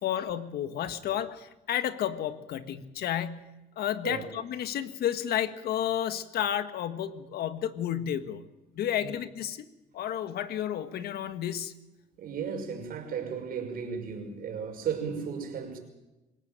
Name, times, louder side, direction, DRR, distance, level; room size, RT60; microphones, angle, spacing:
voice 1, 0.0-3.5 3.8-8.4 8.8-9.6 9.9-11.7, left 10 dB, 70° left, 1.7 m, -31 dB
voice 2, 12.2-15.8, right 6 dB, 60° right, 5.8 m, -35 dB
26.5 x 17.0 x 9.0 m
cardioid pair, 110°, 17 cm